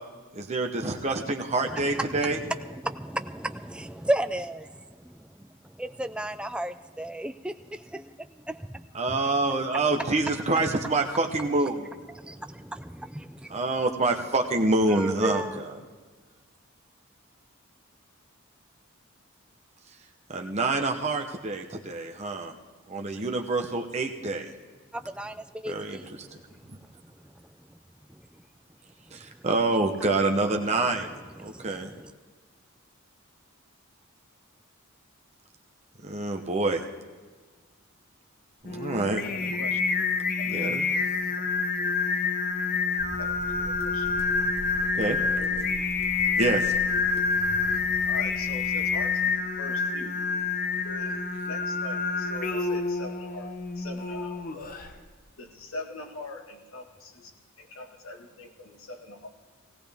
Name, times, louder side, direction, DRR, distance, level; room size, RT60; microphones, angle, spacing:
voice 1, 0.3-2.4 8.9-11.9 13.5-15.6 20.3-22.5 22.9-24.5 25.7-26.4 26.7-26.8 29.1-31.9 36.0-36.8 38.7-39.2 40.4-40.9 44.9-45.2 46.4-46.8, right 2 dB, 30° right, 3 dB, 0.8 m, -27 dB
voice 2, 1.6-9.2 12.1-12.8 13.2-13.6 14.9-15.6 24.9-27.8 28.1-28.4 29.1-29.5 31.4-32.1, right 1 dB, 5° right, 9 dB, 0.3 m, -35 dB
Singing, 38.7-54.9, left 4 dB, 40° left, 1.0 m, -28 dB
voice 3, 38.9-39.8 40.4-40.9 43.2-44.3 45.2-45.7 47.4-47.6 48.1-50.1 50.8-54.8 55.4-59.3, left 2 dB, 70° left, 3 dB, 1.6 m, -43 dB
sound 1, 43.0-49.0, equal, 10° left, 1.2 m, -44 dB
18.0 x 17.5 x 3.5 m, 1.4 s
head